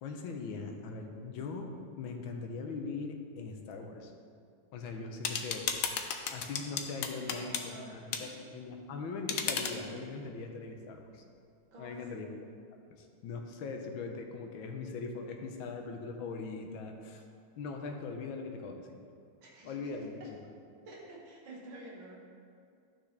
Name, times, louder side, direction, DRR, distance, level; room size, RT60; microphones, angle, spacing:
voice 1, 0.0-1.7 2.0-4.1 4.7-5.7 6.3-7.6 7.9-8.3 8.5-11.2 11.8-12.3 12.9-17.2 17.6-19.0 19.6-20.4, left 4 dB, 90° left, 3 dB, 1.6 m, -40 dB
sound 1, 5.2-7.7 8.1-8.2 9.3-9.8, left 7 dB, 70° left, 0.8 m, -34 dB
voice 2, 7.1-8.3 11.7-12.3 19.4-20.3 20.9-22.2, right 1 dB, 80° right, -3 dB, 2.3 m, -49 dB
12.0 x 5.9 x 3.3 m, 2.4 s
omnidirectional pair, 2.1 m